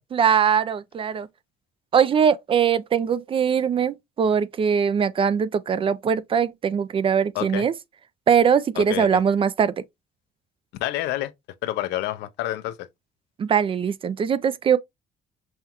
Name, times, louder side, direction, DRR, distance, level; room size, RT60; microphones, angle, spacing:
voice 1, 0.1-1.3 1.9-7.7 8.3-9.7 13.4-14.8, right 7 dB, 30° right, 0.3 m, -21 dB
voice 2, 7.3-7.7 8.7-9.2 10.8-11.3 11.6-12.9, left 14 dB, 85° left, 0.5 m, -28 dB
5.5 x 2.3 x 2.9 m
cardioid pair, 110°, 17 cm